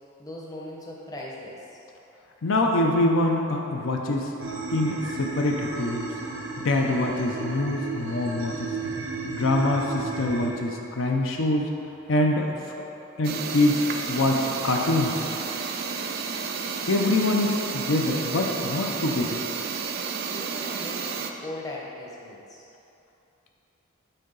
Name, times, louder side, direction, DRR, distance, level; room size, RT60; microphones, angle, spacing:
voice 1, 0.2-1.8 20.3-22.6, left 1 dB, 15° left, -4 dB, 0.7 m, -39 dB
voice 2, 2.4-4.3 4.7-6.1 6.6-8.7 9.3-11.7 12.1-12.6 13.2-13.8 14.1-15.3 16.9-19.4, left 2 dB, 70° left, 1 dB, 0.5 m, -24 dB
sound 1, 4.4-10.5, right 4 dB, 65° right, 0.8 m, -34 dB
sound 2, 13.2-21.3, right 5 dB, 45° right, 0.3 m, -31 dB
6.7 x 4.6 x 3.8 m, 2.8 s
head